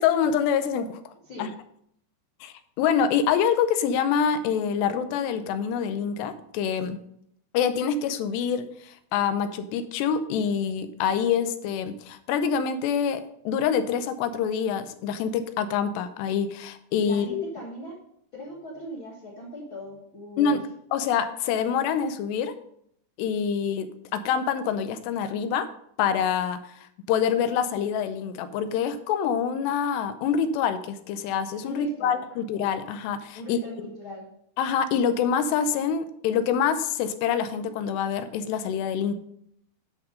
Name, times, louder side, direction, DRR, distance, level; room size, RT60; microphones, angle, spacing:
voice 1, 0.0-1.1 1.4-1.5 2.4-7.0 7.5-17.5 20.4-20.6 20.9-22.5 23.2-25.7 26.0-26.8 27.1-33.9 34.6-39.1, left 7 dB, 90° left, 10 dB, 2.9 m, -26 dB
voice 2, 17.0-18.0 18.3-20.6 31.6-32.2 33.3-34.2, equal, 55° left, -3 dB, 1.4 m, -39 dB
10.0 x 5.6 x 5.2 m, 0.70 s
omnidirectional pair, 4.8 m